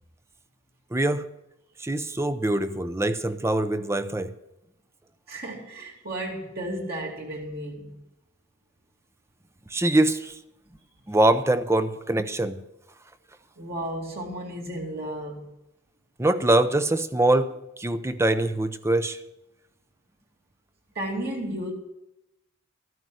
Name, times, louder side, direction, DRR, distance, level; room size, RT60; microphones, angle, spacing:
voice 1, 0.9-1.3 1.8-4.3 9.7-10.4 11.1-12.6 16.2-19.2, right 1 dB, 15° right, 0.6 m, -23 dB
voice 2, 5.3-7.9 13.6-15.4 20.9-21.7, right 1 dB, 55° right, 2.5 m, -33 dB
13.5 x 9.4 x 6.2 m
head